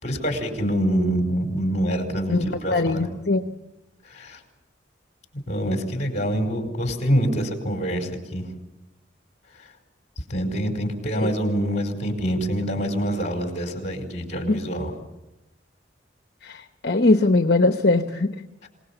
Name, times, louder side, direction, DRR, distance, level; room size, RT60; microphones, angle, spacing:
voice 1, 0.0-3.1 4.1-4.4 5.5-8.4 10.3-14.9, equal, 40° left, 4 dB, 4.6 m, -25 dB
voice 2, 2.3-3.4 11.2-11.3 14.5-14.6 16.4-18.3, left 2 dB, 55° left, 7 dB, 1.1 m, -21 dB
27.0 x 19.0 x 7.2 m, 0.97 s
head